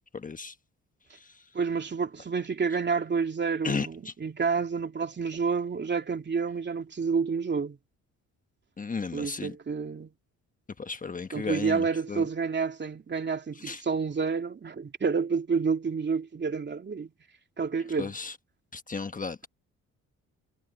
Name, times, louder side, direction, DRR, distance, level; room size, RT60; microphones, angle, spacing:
voice 1, 0.1-0.5 3.6-4.1 8.8-9.5 10.8-12.2 13.6-13.8 18.0-18.3 18.7-19.5, left 4 dB, 25° left, 1.2 m, -34 dB
voice 2, 1.5-7.8 9.1-10.1 11.3-17.1 17.6-18.1, right 5 dB, 35° right, 2.8 m, -29 dB
cardioid pair, 90°, 30 cm